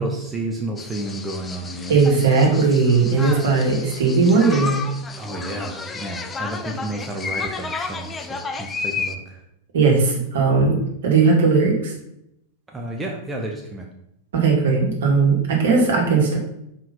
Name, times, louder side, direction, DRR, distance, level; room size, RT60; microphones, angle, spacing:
voice 1, 0.0-2.0 5.2-9.4 12.7-13.9, right 2 dB, 10° right, 1 dB, 1.0 m, -31 dB
sound 1, 0.8-9.2, left 4 dB, 15° left, 0.6 m, -32 dB
voice 2, 1.9-4.8 9.7-10.8 11.0-11.9 14.3-16.4, right 4 dB, 60° right, 0 dB, 2.1 m, -17 dB
5.7 x 4.9 x 5.3 m, 0.79 s
figure-of-eight pair, 95°, 0 cm